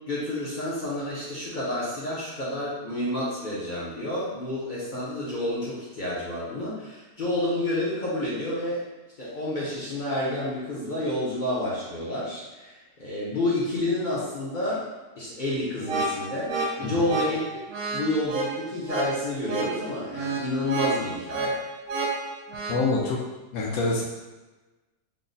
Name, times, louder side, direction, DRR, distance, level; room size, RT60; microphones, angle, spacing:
voice 1, 0.1-8.8 9.2-14.9 15.2-17.6 17.9-21.6, left 1 dB, 50° left, -8 dB, 0.6 m, -29 dB
sound 1, 15.8-22.8, right 3 dB, 85° right, 1.1 m, -30 dB
voice 2, 16.8-17.1 22.7-23.2 23.5-24.0, left 3 dB, 70° left, -3 dB, 1.0 m, -26 dB
3.5 x 2.0 x 3.9 m, 1.2 s
omnidirectional pair, 1.7 m